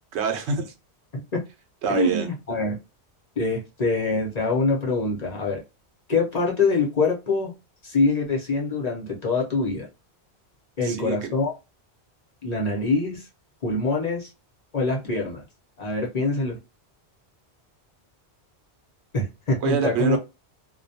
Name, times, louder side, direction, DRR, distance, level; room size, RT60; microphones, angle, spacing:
voice 1, 0.1-0.7 1.8-2.3 10.8-11.3 19.6-20.2, right 6 dB, 80° right, 6 dB, 0.9 m, -25 dB
voice 2, 1.9-2.8 3.4-5.6 6.1-7.5 7.8-9.9 10.8-11.5 12.4-13.3 13.6-14.3 14.7-15.4 15.8-16.6 19.1-20.2, left 3 dB, 45° left, -1 dB, 0.8 m, -24 dB
2.2 x 2.2 x 2.6 m, 0.27 s
omnidirectional pair, 1.1 m